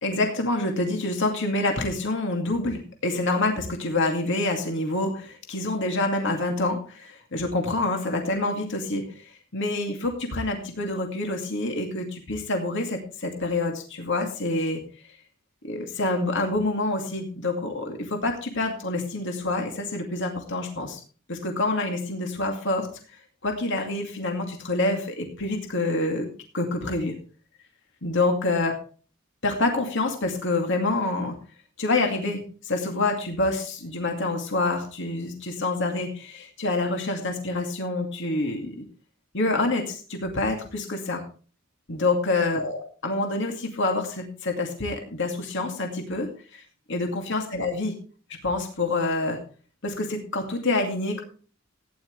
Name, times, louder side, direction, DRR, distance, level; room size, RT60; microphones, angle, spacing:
voice 1, 0.0-14.8 15.6-21.0 21.3-22.9 23.4-26.3 26.5-27.1 28.0-28.7 29.4-31.3 31.8-38.7 39.3-41.2 41.9-46.6 46.9-47.9 48.4-49.4 49.8-51.2, left 2 dB, 65° left, 2 dB, 2.4 m, -27 dB
16.5 x 10.0 x 3.2 m, 0.39 s
head